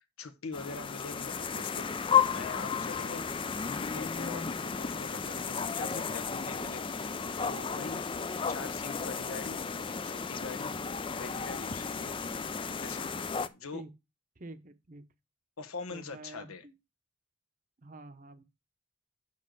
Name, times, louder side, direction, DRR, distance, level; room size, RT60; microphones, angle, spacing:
voice 1, 0.2-1.9 2.3-3.3 3.8-9.6 10.0-10.7 11.2-12.2 12.8-13.8 15.6-16.6, left 4 dB, 85° left, 1.1 m, -43 dB
sound 1, 0.5-13.5, left 6 dB, 25° left, 0.4 m, -33 dB
voice 2, 14.4-15.0 15.9-16.7 17.8-18.4, right 2 dB, 40° right, 0.8 m, -47 dB
6.3 x 5.5 x 6.6 m
head